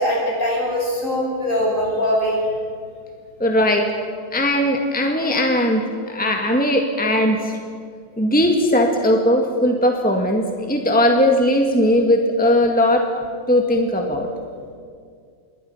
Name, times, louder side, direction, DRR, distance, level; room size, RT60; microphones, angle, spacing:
voice 1, 0.0-2.4, equal, 55° left, -3 dB, 8.3 m, -21 dB
voice 2, 3.4-3.9 4.3-7.5 8.2-13.1 13.5-14.3, left 1 dB, 5° left, 2 dB, 1.9 m, -18 dB
27.0 x 22.5 x 5.8 m, 2.2 s
omnidirectional pair, 1.6 m